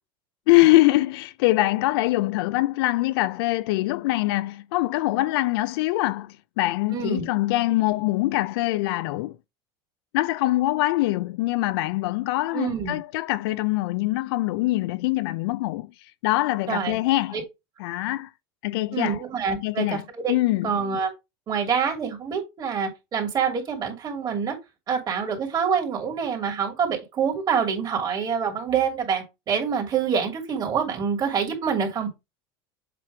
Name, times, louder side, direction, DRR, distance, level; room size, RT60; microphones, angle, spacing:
voice 1, 0.5-9.4 10.1-15.9 16.2-17.4 17.8-18.3 18.6-19.2 19.5-20.0 20.3-20.7, left 18 dB, 75° left, 0.5 m, -23 dB
voice 2, 6.9-7.3 12.5-13.0 16.7-17.0 17.3-17.4 18.9-20.4 20.6-21.1 21.5-24.5 24.9-32.1, right 6 dB, 30° right, 2.7 m, -26 dB
7.6 x 3.0 x 4.9 m
supercardioid pair, 125°, 13 cm